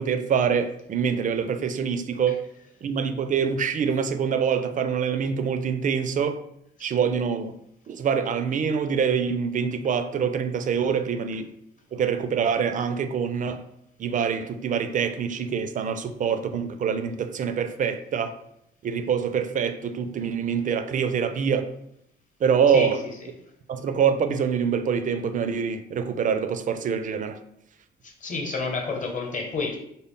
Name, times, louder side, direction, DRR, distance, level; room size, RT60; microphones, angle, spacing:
voice 1, 0.0-2.4 2.8-6.4 6.8-7.5 7.9-11.5 11.9-13.6 14.0-18.3 18.8-21.7 22.4-23.0 23.7-27.4, right 7 dB, 40° right, 9 dB, 0.4 m, -25 dB
voice 2, 28.0-29.8, left 4 dB, 40° left, 1 dB, 1.0 m, -29 dB
3.9 x 2.0 x 3.6 m, 0.77 s
cardioid pair, 90°, 20 cm